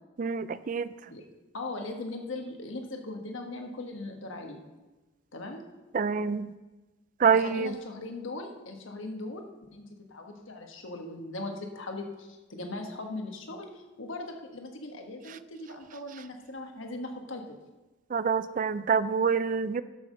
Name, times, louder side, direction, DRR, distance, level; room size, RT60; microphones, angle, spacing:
voice 1, 0.2-0.9 5.9-6.5 7.2-7.7 18.1-19.8, right 6 dB, 40° right, 15 dB, 0.3 m, -26 dB
voice 2, 1.5-4.6 5.3-5.6 7.3-9.4 9.7-9.8 10.1-17.6, left 2 dB, 65° left, 3 dB, 1.4 m, -39 dB
12.0 x 5.7 x 6.4 m, 1.1 s
head